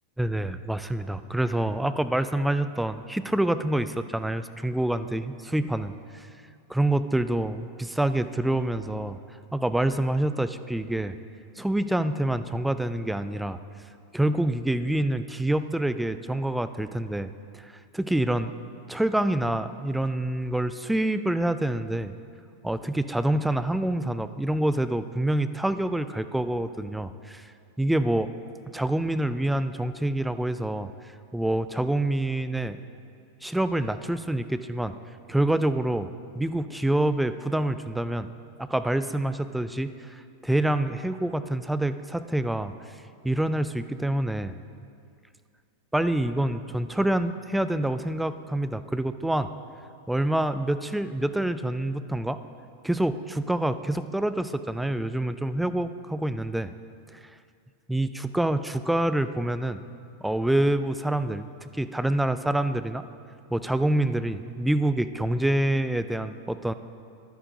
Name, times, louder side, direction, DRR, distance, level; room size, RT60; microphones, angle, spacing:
voice 1, 0.2-6.3 6.7-9.2 9.5-11.2 11.6-13.6 14.1-18.5 18.9-22.1 22.6-27.5 27.8-28.3 28.7-30.9 31.3-32.8 33.4-34.9 35.3-36.1 36.3-38.3 38.6-42.9 43.2-44.6 45.9-49.5 50.1-52.4 52.8-56.7 57.1-57.2 57.9-59.8 60.2-63.0 63.5-66.7, right 1 dB, 5° right, 11 dB, 0.4 m, -26 dB
15.0 x 11.0 x 2.7 m, 2.3 s
figure-of-eight pair, 90°, 0 cm